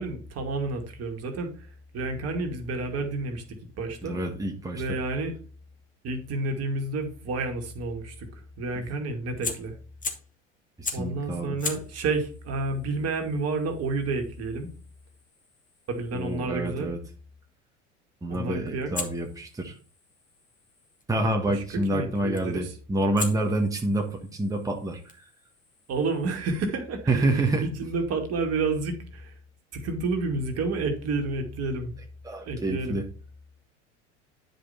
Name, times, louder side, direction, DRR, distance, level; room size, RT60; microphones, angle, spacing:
voice 1, 0.0-1.7 1.9-4.2 4.7-5.4 6.0-8.3 8.6-9.7 10.9-14.7 15.9-16.9 18.3-18.9 21.4-21.6 21.9-22.7 25.9-29.3 29.7-32.0 32.4-33.0, right 3 dB, 45° right, 4 dB, 2.1 m, -30 dB
voice 2, 4.0-5.0 8.8-8.9 10.8-11.6 16.1-17.0 18.2-19.8 21.1-25.2 27.1-27.7 32.2-33.0, right 2 dB, 10° right, 2 dB, 1.5 m, -28 dB
Fire, 9.4-10.4 10.8-11.2 11.6-16.5 18.9-21.0 22.4-22.7 23.2-26.6, left 4 dB, 20° left, 1.9 m, -40 dB
10.5 x 5.1 x 4.2 m, 0.40 s
figure-of-eight pair, 70°, 36 cm